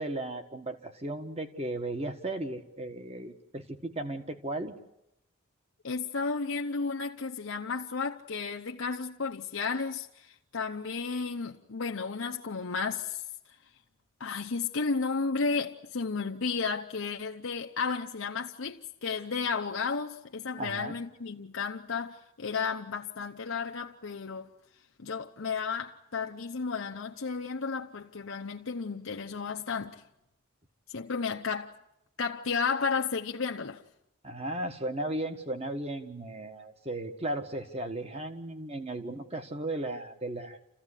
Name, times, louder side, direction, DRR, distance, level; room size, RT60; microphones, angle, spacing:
voice 1, 0.0-4.7 20.6-21.0 34.2-40.6, right 1 dB, 30° right, 1.5 m, -35 dB
voice 2, 5.8-13.2 14.2-24.5 25.0-30.0 30.9-31.7 32.2-33.8, left 5 dB, 70° left, 0.8 m, -33 dB
28.0 x 15.0 x 9.9 m
head